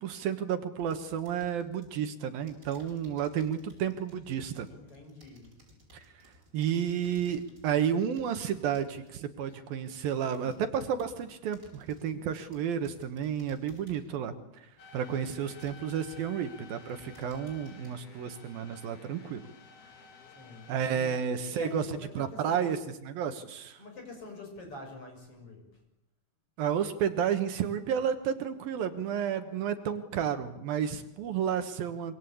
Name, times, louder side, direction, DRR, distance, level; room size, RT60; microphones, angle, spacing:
voice 1, 0.0-4.7 5.9-14.3 14.9-19.4 20.7-21.8 22.2-22.8 23.0-23.8 26.6-32.2, right 8 dB, 70° right, 8 dB, 3.0 m, -31 dB
sound 1, 0.8-2.0 2.5-9.2 9.7-11.2 11.5-12.2 12.5-14.2 14.8-14.9 15.5-16.5 16.8-17.9, equal, 20° right, 7.8 m, -58 dB
voice 2, 4.7-5.6 9.5-9.6 10.4-10.6 20.4-21.1 21.5-22.7 23.8-25.6, left 2 dB, 35° left, 3 dB, 7.4 m, -46 dB
sound 2, 14.8-21.2, left 4 dB, 75° left, 5.1 m, -53 dB
25.5 x 25.5 x 8.5 m, 0.82 s
omnidirectional pair, 4.5 m